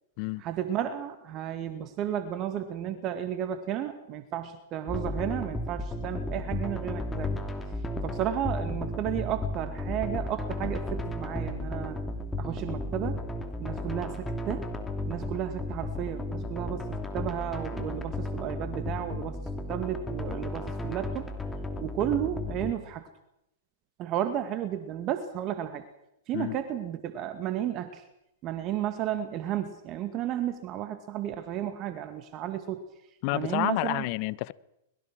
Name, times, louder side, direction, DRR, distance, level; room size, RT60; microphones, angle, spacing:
voice 1, 0.4-7.3 8.0-12.0 12.4-13.2 13.6-14.7 15.1-19.4 19.7-21.3 21.8-23.1 24.0-25.8 26.3-28.0 28.4-32.8 33.3-34.0, right 10 dB, 35° right, 2.1 m, -33 dB
sound 1, 4.9-22.7, left 1 dB, 10° left, 3.0 m, -34 dB
voice 2, 33.2-34.5, left 22 dB, 50° left, 0.9 m, -29 dB
25.0 x 21.5 x 6.2 m
hypercardioid pair, 115°, 0 cm